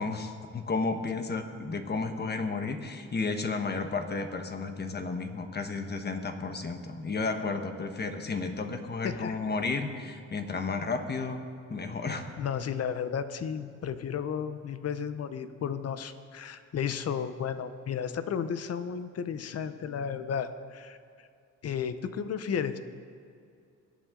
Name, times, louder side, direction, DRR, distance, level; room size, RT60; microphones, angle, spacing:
voice 1, 0.0-11.4 11.7-12.3, left 4 dB, 35° left, 6 dB, 1.4 m, -32 dB
voice 2, 9.0-9.4 12.4-21.0 21.6-22.8, left 7 dB, 55° left, 11 dB, 0.9 m, -33 dB
22.5 x 8.4 x 3.8 m, 2.4 s
cardioid pair, 90°, 30 cm